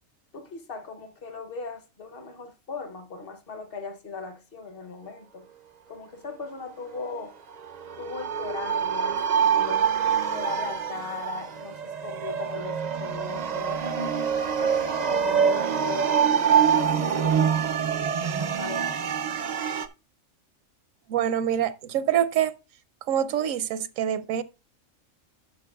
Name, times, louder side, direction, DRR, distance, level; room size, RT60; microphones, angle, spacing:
voice 1, 0.3-5.5 5.9-7.3 8.0-9.9 10.3-13.8 14.5-19.2, left 4 dB, 50° left, 1.0 m, -38 dB
sound 1, 7.5-19.9, right 7 dB, 65° right, 0.4 m, -25 dB
voice 2, 21.1-22.5 23.1-24.4, right 10 dB, 80° right, 1.0 m, -25 dB
12.5 x 6.3 x 2.3 m
omnidirectional pair, 1.4 m